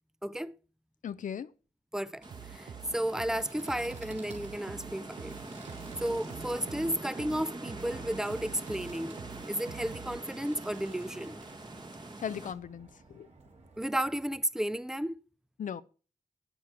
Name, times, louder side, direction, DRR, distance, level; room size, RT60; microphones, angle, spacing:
voice 1, 0.2-0.5 1.9-2.2 2.5-5.3 6.0-9.2 9.5-11.4 13.8-15.1, right 1 dB, 5° right, 0.6 m, -33 dB
voice 2, 1.0-1.5 12.2-13.3 15.6-15.8, left 8 dB, 80° left, 0.7 m, -37 dB
sound 1, 2.2-12.5, right 2 dB, 35° right, 1.6 m, -44 dB
sound 2, 2.2-14.4, right 3 dB, 60° right, 3.4 m, -55 dB
sound 3, 2.3-10.2, right 9 dB, 80° right, 0.7 m, -47 dB
9.9 x 9.6 x 6.2 m
wide cardioid pair, 110°, 13 cm